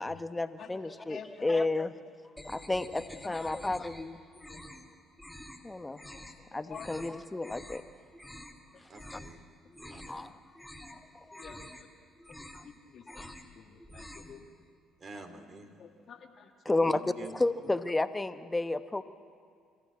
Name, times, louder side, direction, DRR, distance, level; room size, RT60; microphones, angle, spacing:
voice 1, 0.0-1.9 2.4-4.2 5.6-6.0 6.5-7.8 9.1-9.2 9.9-10.4 10.9-11.6 12.5-12.6 13.1-13.3 16.6-17.0 17.4-19.0, left 2 dB, 15° left, 11 dB, 1.0 m, -32 dB
voice 2, 0.6-1.5 3.2-3.6 4.4-4.6 6.3-6.4 6.7-7.0 11.4-11.9 12.3-12.4 12.6-13.3 13.6-14.5 15.8-16.5, left 7 dB, 55° left, 4 dB, 1.6 m, -49 dB
sound 1, 2.4-4.0 4.3-4.8 5.2-5.6 5.9-6.3 6.7-7.1 7.4-7.8 8.1-8.6 8.9-9.3 9.7-10.2 10.5-11.0 11.3-11.8 12.2-12.7 13.0-13.5 13.8-14.4, equal, ahead, 2.5 m, -48 dB
voice 3, 8.9-9.4 9.8-10.1 15.0-15.7 16.8-17.3, right 3 dB, 45° right, 6 dB, 2.8 m, -46 dB
25.5 x 14.5 x 8.5 m, 2.2 s
supercardioid pair, 70°, 0 cm